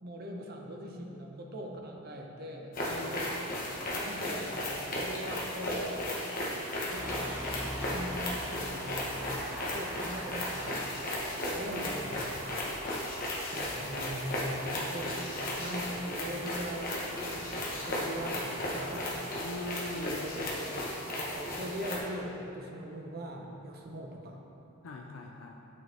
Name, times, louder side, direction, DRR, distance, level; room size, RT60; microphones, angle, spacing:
voice 1, 0.0-2.7 3.0-3.3 4.0-6.2 6.8-7.3 7.6-9.1 9.6-10.9 11.5-12.6 13.5-15.3 15.6-19.4 19.9-24.4, equal, 45° right, 1 dB, 0.8 m, -41 dB
sound 1, 2.7-22.0, left 1 dB, 40° left, 1.1 m, -35 dB
voice 2, 2.9-3.2 19.4-20.6 24.8-25.6, left 2 dB, 65° left, 1 dB, 0.4 m, -41 dB
sound 2, 6.9-20.5, equal, 10° right, 1.0 m, -46 dB
8.7 x 6.4 x 3.4 m, 2.9 s
head